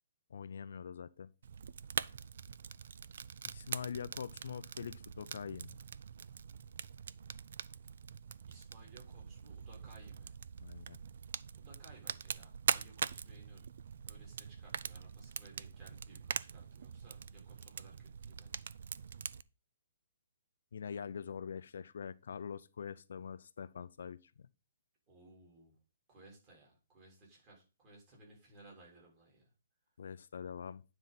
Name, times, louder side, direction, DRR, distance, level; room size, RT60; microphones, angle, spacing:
voice 1, 0.3-1.3 3.4-5.8 10.6-11.0 20.7-24.5 30.0-30.8, left 7 dB, 65° left, 0.5 m, -44 dB
Fire, 1.4-19.4, right 7 dB, 60° right, 0.4 m, -43 dB
voice 2, 8.5-10.4 11.6-13.6 14.0-18.7 25.1-25.7 26.1-29.5, right 2 dB, 20° right, 3.7 m, -60 dB
9.4 x 3.9 x 5.8 m
hypercardioid pair, 170°, 0 cm